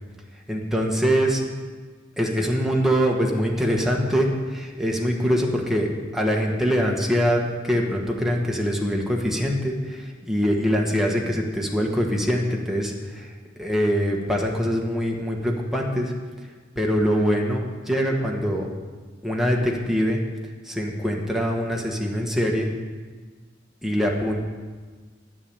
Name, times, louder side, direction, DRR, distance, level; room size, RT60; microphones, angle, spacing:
voice 1, 0.5-1.4 2.2-16.1 16.7-18.7 19.2-20.2 20.6-22.7 23.8-24.4, equal, ahead, -1 dB, 1.6 m, -23 dB
12.5 x 6.2 x 8.8 m, 1.4 s
head